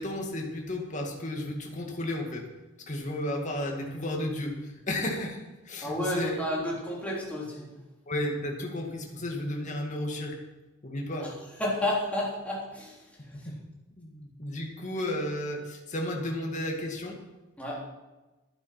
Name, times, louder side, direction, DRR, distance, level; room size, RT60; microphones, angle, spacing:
voice 1, 0.0-2.4 2.9-6.4 8.1-10.4 10.8-11.4 13.3-13.6 14.0-17.2, left 1 dB, 40° left, 1 dB, 2.2 m, -33 dB
voice 2, 5.8-7.7 11.2-11.3 11.6-13.0 17.6-17.8, left 1 dB, 5° left, -5 dB, 3.6 m, -31 dB
12.5 x 9.5 x 6.0 m, 1.1 s
head